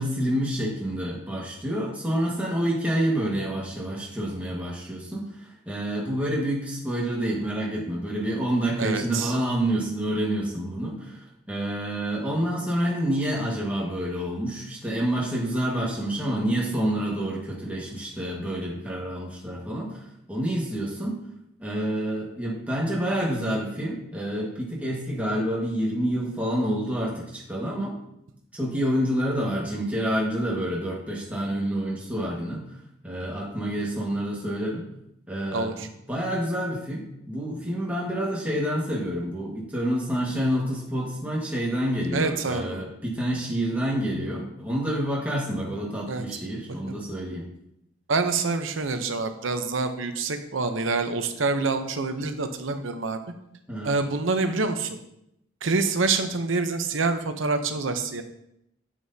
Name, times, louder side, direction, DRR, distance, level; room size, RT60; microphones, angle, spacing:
voice 1, 0.0-20.0 20.3-21.2 21.6-28.0 28.5-32.6 33.0-34.8 35.3-47.4 53.7-54.0, right 1 dB, 5° right, -4 dB, 1.7 m, -28 dB
voice 2, 8.8-9.3 35.5-35.9 42.1-42.8 46.1-46.2 46.9-47.0 48.1-53.2 53.8-55.0 55.6-58.2, right 3 dB, 80° right, 8 dB, 0.8 m, -26 dB
9.4 x 7.7 x 2.8 m, 0.80 s
head